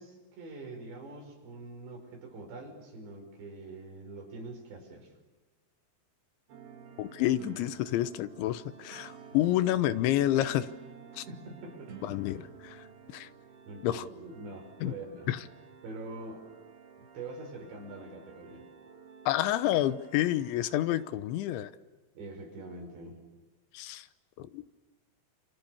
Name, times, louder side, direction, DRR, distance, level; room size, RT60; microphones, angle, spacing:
voice 1, 0.0-5.1 11.1-12.2 13.7-15.3 15.8-16.5 17.0-18.7 22.2-23.2, right 2 dB, 75° right, 3 dB, 7.5 m, -44 dB
sound 1, 6.5-21.1, right 6 dB, 60° right, 4.6 m, -52 dB
voice 2, 7.0-10.7 11.1-11.2 12.0-12.8 13.1-13.3 13.8-14.1 14.8-14.9 15.3-15.4 19.3-21.7 23.7-24.1 24.4-24.6, left 13 dB, 90° left, 14 dB, 3.4 m, -29 dB
28.5 x 28.5 x 7.1 m, 1.2 s
omnidirectional pair, 5.1 m